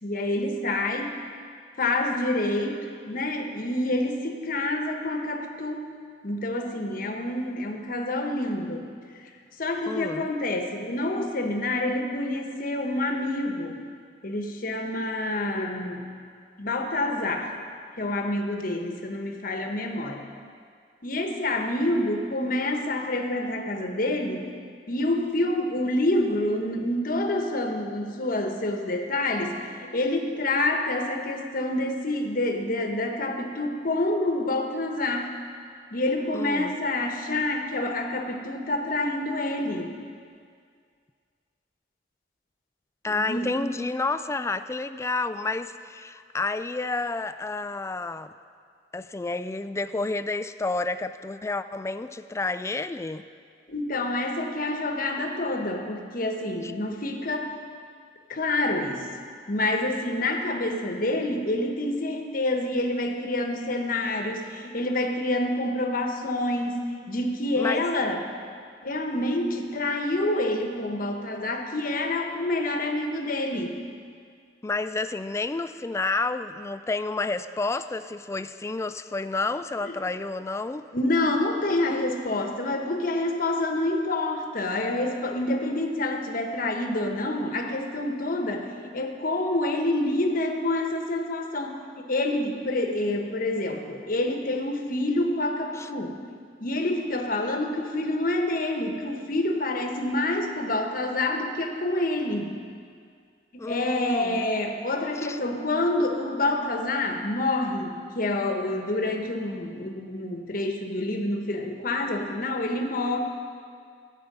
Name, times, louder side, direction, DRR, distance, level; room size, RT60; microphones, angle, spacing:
voice 1, 0.0-1.2 1.8-5.9 6.2-8.8 9.6-13.8 14.2-16.0 16.6-17.5 18.0-20.2 21.0-24.5 24.9-35.3 35.9-39.9 43.1-43.6 53.7-57.5 58.3-59.1 59.5-68.2 68.8-73.8 79.8-79.9 80.9-96.2 96.6-102.6 103.5-113.2, left 1 dB, 55° left, 4 dB, 1.1 m, -27 dB
voice 2, 9.9-10.3 36.3-36.7 43.0-48.3 48.9-53.3 56.6-56.7 67.6-67.9 74.6-80.9 95.7-95.9 103.6-104.5 105.2-105.4, left 3 dB, 15° left, 12 dB, 0.3 m, -30 dB
13.0 x 8.3 x 5.4 m, 2.2 s
head